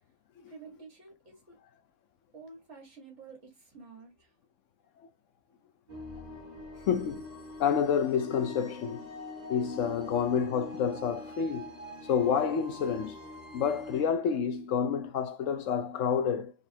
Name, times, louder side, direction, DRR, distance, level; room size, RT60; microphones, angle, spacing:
voice 1, 0.5-1.6 2.3-4.3, right 4 dB, 55° right, 1.6 m, -50 dB
sound 1, 5.9-14.0, left 1 dB, 30° right, 1.8 m, -44 dB
voice 2, 6.9-7.3 7.6-9.1 9.5-11.7 12.1-13.2 13.5-16.5, left 7 dB, 70° left, 0.9 m, -29 dB
4.1 x 3.1 x 2.7 m
omnidirectional pair, 1.5 m